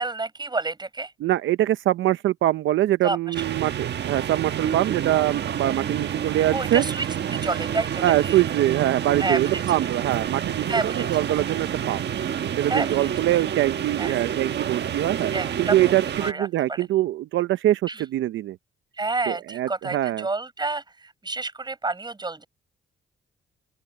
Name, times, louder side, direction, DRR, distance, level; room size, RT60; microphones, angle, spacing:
voice 1, 0.0-1.1 3.0-3.4 6.5-8.4 9.2-9.6 10.7-11.1 12.7-13.1 14.0-14.1 15.3-15.9 16.2-16.9 17.9-18.0 19.0-22.5, right 3 dB, 20° right, 5.4 m, -29 dB
voice 2, 1.2-6.8 8.0-12.1 12.6-15.3 15.6-18.6 19.3-20.3, right 14 dB, 75° right, 0.7 m, -23 dB
sound 1, 3.3-16.3, right 9 dB, 60° right, 1.4 m, -28 dB
open air
cardioid pair, 90°, 20 cm